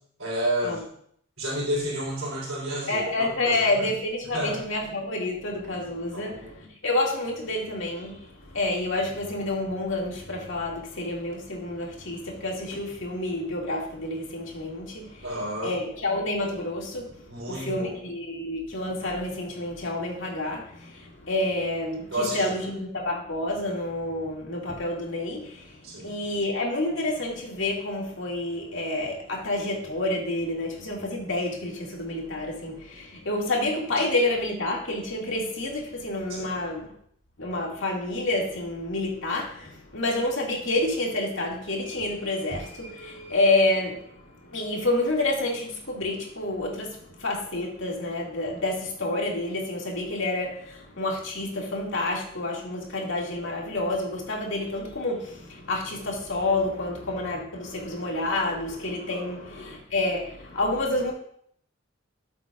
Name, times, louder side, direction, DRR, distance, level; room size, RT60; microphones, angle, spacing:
voice 1, 0.2-0.8 1.4-3.8 4.3-4.6 6.1-6.7 15.2-15.7 17.3-17.9 22.1-22.5 25.8-26.1 36.4-36.5 59.1-59.3, equal, 75° right, -5 dB, 3.6 m, -31 dB
voice 2, 2.9-36.9 37.4-61.1, left 2 dB, 65° left, -1 dB, 2.2 m, -29 dB
13.0 x 7.6 x 2.4 m, 0.67 s
head